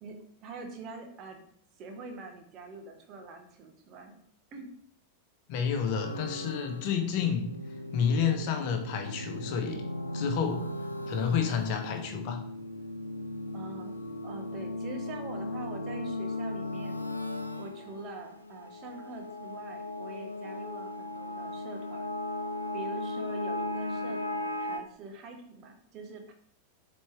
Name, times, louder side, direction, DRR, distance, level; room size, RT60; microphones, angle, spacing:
voice 1, 0.0-1.4 1.8-4.2 4.5-4.7 13.5-13.9 14.2-17.0 17.6-22.1 22.7-26.3, right 3 dB, 35° right, 4 dB, 1.3 m, -44 dB
voice 2, 5.5-7.5 7.9-9.8 10.1-10.7 11.1-12.4, left 7 dB, 45° left, 5 dB, 1.1 m, -29 dB
sound 1, 6.0-24.8, left 1 dB, 85° left, 0.5 m, -37 dB
7.4 x 4.2 x 3.4 m, 0.65 s
figure-of-eight pair, 90°, 0 cm